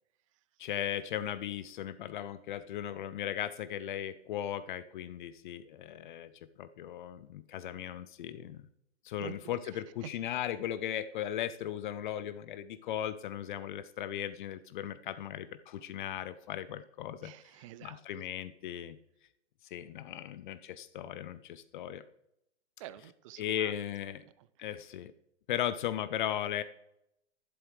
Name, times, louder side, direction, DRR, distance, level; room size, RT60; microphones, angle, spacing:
voice 1, 0.6-6.3 6.6-8.7 9.0-17.3 17.8-19.0 19.7-22.0 23.4-24.2 24.6-25.1 25.5-26.6, left 11 dB, 45° left, 14 dB, 0.6 m, -37 dB
voice 2, 9.2-10.1 17.2-18.3 22.8-23.7 24.4-24.7, right 12 dB, 30° right, 16 dB, 0.5 m, -49 dB
11.5 x 10.5 x 3.2 m, 0.81 s
hypercardioid pair, 130°, 34 cm